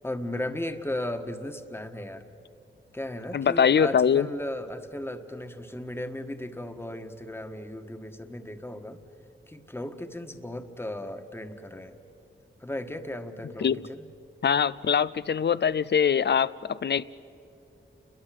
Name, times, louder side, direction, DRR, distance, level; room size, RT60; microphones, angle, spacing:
voice 1, 0.0-2.3 2.9-9.0 9.5-12.0 12.6-14.1, left 1 dB, 10° left, 7 dB, 1.5 m, -36 dB
voice 2, 3.3-4.3 13.6-13.8 14.4-17.0, left 7 dB, 60° left, 18 dB, 0.5 m, -23 dB
29.5 x 22.0 x 7.6 m, 2.8 s
wide cardioid pair, 85°, 20 cm